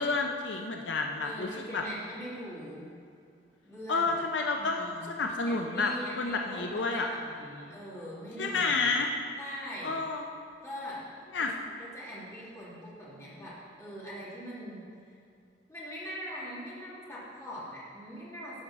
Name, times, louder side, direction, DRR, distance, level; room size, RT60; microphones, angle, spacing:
voice 1, 0.0-1.8 3.9-7.1 8.4-9.1 9.8-10.3 11.3-11.5, left 3 dB, 70° left, 3 dB, 0.6 m, -30 dB
voice 2, 1.2-2.9 3.6-4.2 4.6-8.9 9.4-10.0 10.6-11.0 11.4-11.5 11.8-15.2 15.7-18.6, equal, 15° left, -8 dB, 2.7 m, -42 dB
11.5 x 5.2 x 6.1 m, 2.4 s
head